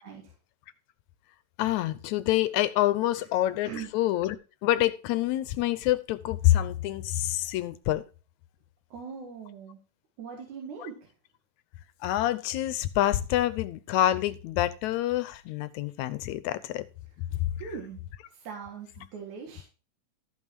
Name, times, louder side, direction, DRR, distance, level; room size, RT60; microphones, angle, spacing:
voice 1, 0.0-0.3 3.2-3.3 3.6-3.9 8.9-9.8 10.2-11.1 17.6-18.0 18.3-19.6, right 6 dB, 80° right, 3.1 m, -41 dB
voice 2, 1.6-4.4 4.6-8.0 12.0-16.8 17.4-17.5, left 14 dB, 85° left, 2.0 m, -27 dB
13.5 x 5.6 x 4.6 m
omnidirectional pair, 3.3 m